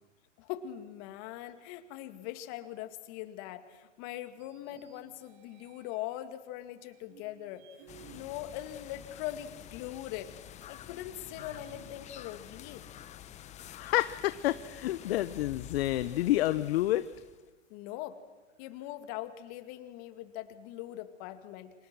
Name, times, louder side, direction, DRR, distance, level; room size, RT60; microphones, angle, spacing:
voice 1, 0.4-7.7 8.1-10.3 10.7-12.8 17.7-18.2 18.6-21.7, left 13 dB, 40° left, 10 dB, 2.2 m, -41 dB
sound 1, 4.3-6.2 6.8-9.7 10.1-10.2 11.3-13.4, right 7 dB, 50° right, 4.6 m, -58 dB
sound 2, 7.9-17.5, left 11 dB, 20° left, 0.9 m, -49 dB
voice 2, 13.7-17.1, left 15 dB, 55° left, 14 dB, 0.9 m, -29 dB
29.5 x 26.0 x 6.2 m, 1.2 s
hypercardioid pair, 135°, 37 cm